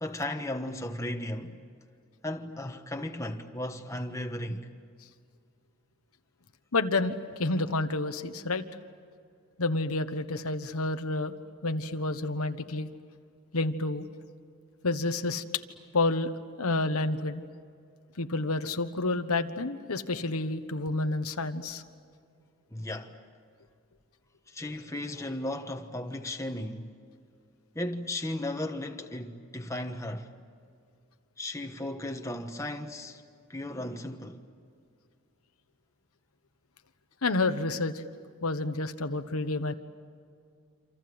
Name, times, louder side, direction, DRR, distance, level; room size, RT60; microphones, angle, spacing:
voice 1, 0.0-1.6 2.2-4.7 22.7-23.2 24.5-27.0 27.7-30.3 31.4-33.2 33.5-34.4, left 1 dB, 15° left, 1.3 m, -35 dB
voice 2, 6.7-7.1 7.4-8.6 9.6-11.3 11.6-12.9 13.5-14.1 14.8-15.4 15.9-16.3 16.6-17.4 18.2-21.8 37.2-38.0 38.4-39.7, left 2 dB, 90° left, 1.3 m, -29 dB
28.0 x 27.0 x 8.0 m
head